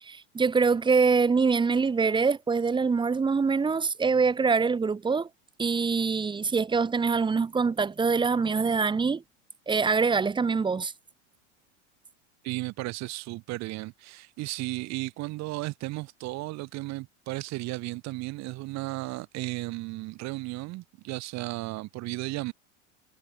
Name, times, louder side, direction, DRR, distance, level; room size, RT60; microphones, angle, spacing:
voice 1, 0.0-5.3 5.6-9.2 9.7-10.9, right 5 dB, 10° right, 0.9 m, -24 dB
voice 2, 12.4-22.5, right 20 dB, 45° right, 1.4 m, -34 dB
hypercardioid pair, 105°, 37 cm